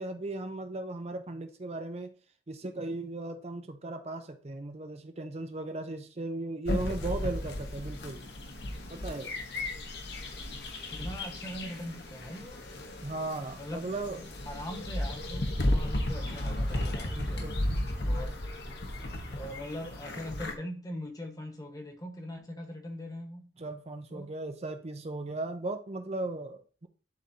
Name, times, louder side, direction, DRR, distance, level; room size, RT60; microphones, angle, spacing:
voice 1, 0.0-2.1 2.5-8.2 8.9-9.3 13.0-14.2 17.1-17.6 23.6-26.9, right 2 dB, 35° right, 0.6 m, -37 dB
sound 1, 6.7-20.5, left 1 dB, 65° left, 1.1 m, -34 dB
voice 2, 10.9-12.6 13.5-13.9 14.5-17.5 18.1-18.3 19.3-23.5 24.1-24.3, left 1 dB, 20° left, 1.3 m, -41 dB
11.5 x 4.0 x 2.8 m
head